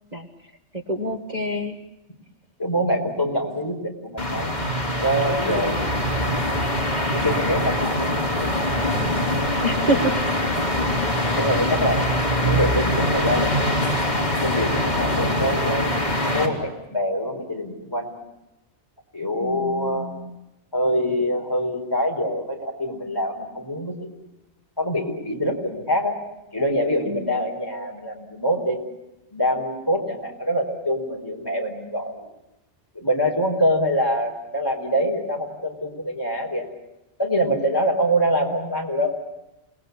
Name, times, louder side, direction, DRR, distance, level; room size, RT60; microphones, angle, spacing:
voice 1, 0.7-1.8 5.4-5.8 9.6-10.1 11.3-11.5 19.4-20.3 27.1-27.3, right 1 dB, 40° right, 3 dB, 1.8 m, -27 dB
voice 2, 2.6-4.5 5.0-5.9 7.1-8.8 9.3-9.6 9.8-9.9 11.4-12.2 12.4-13.8 14.4-16.0 16.2-18.1 19.1-20.1 20.7-24.1 24.8-26.2 26.5-28.8 29.3-32.3 32.9-36.7 37.2-39.1, equal, 20° left, 2 dB, 4.4 m, -25 dB
sound 1, 4.2-16.5, left 1 dB, 40° left, 3.7 m, -23 dB
29.0 x 20.5 x 8.3 m, 0.94 s
omnidirectional pair, 1.2 m